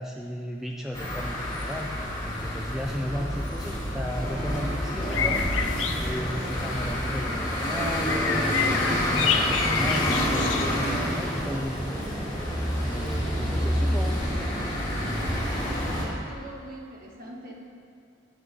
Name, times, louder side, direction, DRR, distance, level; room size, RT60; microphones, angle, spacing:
voice 1, 0.0-1.9 2.2-5.4 6.0-12.2 12.8-14.3, equal, ahead, -1 dB, 0.4 m, -35 dB
sound 1, 0.9-16.1, equal, 20° left, 1.9 m, -28 dB
sound 2, 5.0-11.5, left 7 dB, 90° left, 0.6 m, -30 dB
sound 3, 6.0-11.0, left 1 dB, 45° left, 1.4 m, -44 dB
voice 2, 15.8-17.6, right 1 dB, 50° right, -1 dB, 1.4 m, -43 dB
10.0 x 6.4 x 5.2 m, 2.4 s
head